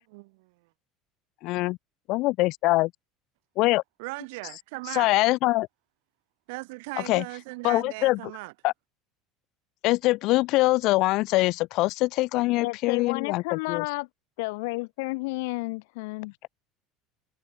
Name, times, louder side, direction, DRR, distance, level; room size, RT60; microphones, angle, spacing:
voice 1, 0.1-0.5 4.0-5.1 6.5-8.5, right 26 dB, 80° right, 1.2 m, -38 dB
voice 2, 1.4-1.8 2.1-2.9 3.6-3.8 4.9-5.7 7.1-7.2 7.6-8.3 8.6-8.7 9.8-13.8, left 20 dB, 55° left, 0.3 m, -23 dB
voice 3, 12.6-14.1 14.4-16.3, left 26 dB, 85° left, 0.7 m, -31 dB
cardioid pair, 150°, 0 cm